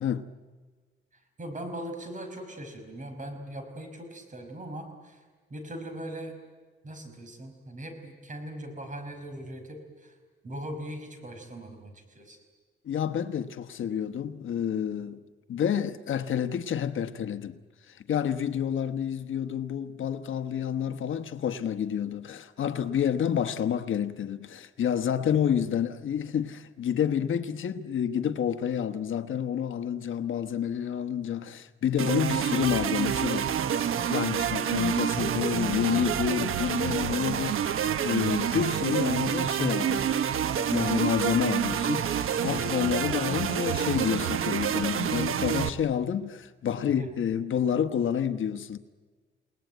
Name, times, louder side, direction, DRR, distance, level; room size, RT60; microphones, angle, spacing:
voice 1, 1.4-5.2 5.5-6.4 6.8-10.1 10.4-12.4 47.0-47.1, right 1 dB, 35° right, 5.4 m, -40 dB
voice 2, 12.8-15.2 15.5-17.6 17.9-33.5 33.8-40.2 40.7-48.8, left 9 dB, 70° left, 1.2 m, -29 dB
sound 1, 32.0-45.7, right 9 dB, 85° right, 1.1 m, -28 dB
29.5 x 19.0 x 9.3 m
cardioid pair, 115°, 21 cm